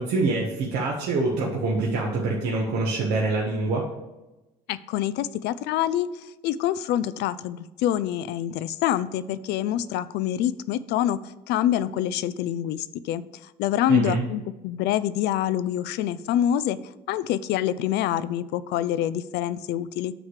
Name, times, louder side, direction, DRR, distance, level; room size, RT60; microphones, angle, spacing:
voice 1, 0.0-3.9 13.9-14.2, right 3 dB, 75° right, -3 dB, 1.2 m, -25 dB
voice 2, 4.7-11.2 11.5-16.8 17.1-20.1, left 11 dB, 80° left, 16 dB, 0.4 m, -26 dB
8.7 x 3.2 x 6.5 m, 1.0 s
cardioid pair, 110°, 17 cm